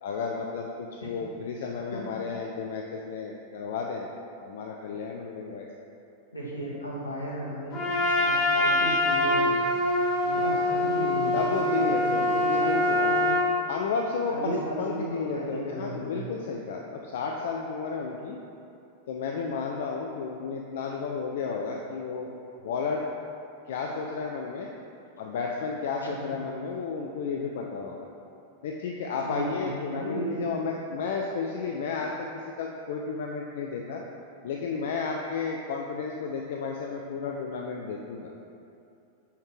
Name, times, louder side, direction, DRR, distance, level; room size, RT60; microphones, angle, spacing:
voice 1, 0.0-4.1 4.4-5.9 10.3-10.8 11.3-13.1 13.7-18.4 19.1-22.3 22.6-23.1 23.7-24.7 25.2-28.1 28.6-34.0 34.4-38.3, left 5 dB, 55° left, 0 dB, 0.4 m, -32 dB
voice 2, 6.3-9.6 10.1-11.6 11.9-13.4 14.3-16.2 26.0-26.3 29.2-30.5, right 1 dB, 80° left, -4 dB, 1.2 m, -35 dB
Trumpet, 7.7-13.5, left 1 dB, 35° left, 1.4 m, -24 dB
6.2 x 5.6 x 3.2 m, 2.6 s
figure-of-eight pair, 90°, 0 cm